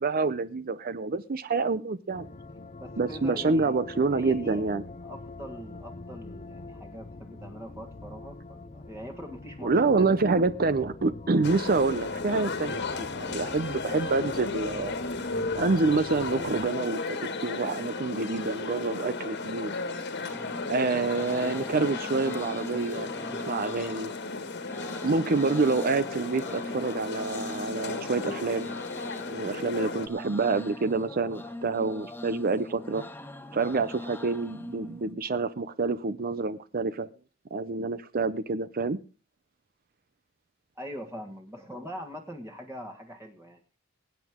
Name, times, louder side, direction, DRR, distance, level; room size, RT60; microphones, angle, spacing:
voice 1, 0.0-2.3 3.0-4.8 9.6-12.8 13.1-14.9 15.6-19.8 20.7-24.1 25.0-28.7 29.3-33.0 33.5-37.1 37.5-39.0, right 3 dB, 45° right, 14 dB, 0.6 m, -27 dB
sound 1, 2.1-16.7, left 2 dB, 35° left, 0.6 m, -44 dB
voice 2, 2.8-3.8 4.1-4.7 5.0-10.3 40.7-43.6, equal, 15° right, 3 dB, 1.5 m, -42 dB
sound 2, 11.4-30.1, left 3 dB, 60° left, 1.7 m, -35 dB
Thai Buddhist Monk Chant, 20.3-35.1, left 2 dB, 10° left, 1.1 m, -42 dB
23.0 x 9.2 x 3.6 m, 0.35 s
head